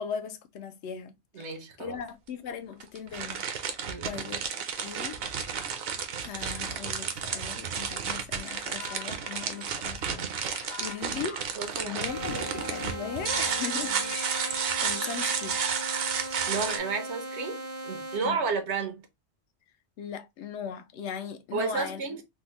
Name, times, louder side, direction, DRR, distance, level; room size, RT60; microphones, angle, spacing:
voice 1, 0.0-3.4 4.0-4.4 4.8-5.2 6.2-11.5 11.8-14.0 14.3-15.6 18.2-18.4 20.0-22.0, left 7 dB, 80° left, 0.9 m, -38 dB
voice 2, 1.3-2.0 3.9-4.1 11.6-12.1 12.3-12.7 14.6-14.8 16.5-17.6 17.9-19.1 21.5-22.2, right 4 dB, 80° right, 1.1 m, -32 dB
sound 1, 2.0-2.1 2.8-16.8, right 7 dB, 65° right, 0.8 m, -32 dB
sound 2, 8.5-17.4, left 8 dB, 55° left, 0.6 m, -46 dB
sound 3, 12.0-18.2, right 1 dB, 20° right, 0.4 m, -38 dB
3.5 x 2.1 x 2.9 m
omnidirectional pair, 1.1 m